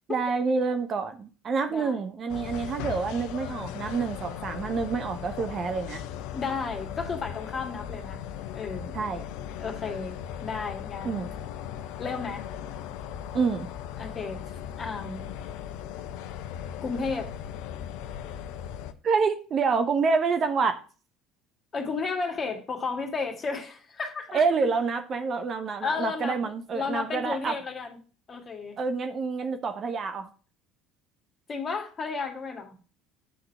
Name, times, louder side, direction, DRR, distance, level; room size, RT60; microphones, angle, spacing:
voice 1, 0.1-6.0 8.9-9.2 11.0-11.3 13.3-13.7 19.0-20.8 24.3-27.6 28.8-30.3, right 5 dB, 40° right, 0.9 m, -27 dB
voice 2, 1.7-2.0 6.3-8.2 8.5-8.9 9.6-11.2 12.0-12.5 14.0-14.4 14.8-15.3 16.8-17.3 21.7-24.4 25.8-28.0 28.3-28.8 31.5-32.7, left 4 dB, 35° left, 2.0 m, -33 dB
sound 1, 2.3-18.9, left 9 dB, 65° left, 0.6 m, -38 dB
8.6 x 3.9 x 5.6 m
hypercardioid pair, 65°, 0 cm